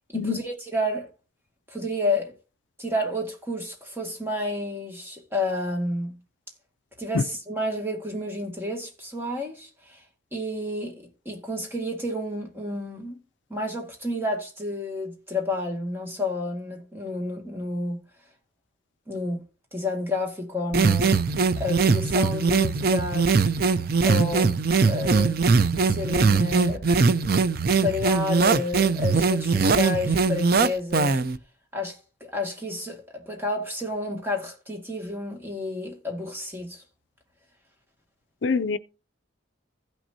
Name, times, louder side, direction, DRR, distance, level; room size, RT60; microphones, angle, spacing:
voice 1, 0.1-1.1 1.7-2.3 2.8-6.2 7.0-10.0 10.3-13.2 13.5-18.0 19.1-19.4 19.7-21.1 21.6-23.5 24.0-25.4 25.9-26.8 27.8-31.2 31.7-36.8, left 2 dB, 10° right, 2.0 m, -30 dB
sound 1, 20.7-31.4, right 4 dB, 50° right, 0.5 m, -21 dB
voice 2, 38.4-38.8, left 4 dB, 65° left, 0.5 m, -24 dB
16.0 x 6.1 x 2.7 m
head